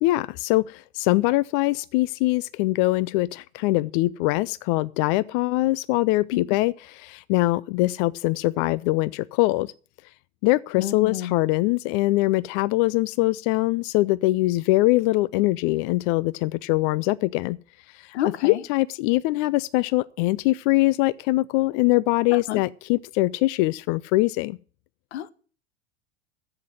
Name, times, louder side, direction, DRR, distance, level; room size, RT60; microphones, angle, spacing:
voice 1, 0.0-9.7 10.4-17.6 17.9-18.2 18.4-24.6, left 19 dB, 50° left, 0.4 m, -23 dB
voice 2, 10.8-11.4 18.1-18.6 22.3-22.6 25.1-25.3, left 12 dB, 70° left, 0.9 m, -29 dB
10.5 x 7.9 x 7.5 m
hypercardioid pair, 90°, 34 cm